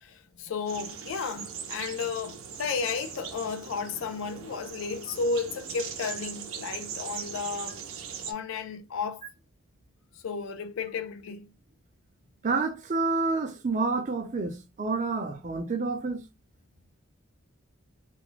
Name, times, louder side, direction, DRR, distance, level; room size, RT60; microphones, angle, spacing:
voice 1, 0.0-7.8 8.3-9.2 10.2-11.5, left 5 dB, 75° left, 0.4 m, -33 dB
sound 1, 0.7-8.3, right 6 dB, 90° right, 0.5 m, -40 dB
voice 2, 12.4-16.2, right 3 dB, 35° right, 0.5 m, -28 dB
2.4 x 2.1 x 3.1 m
head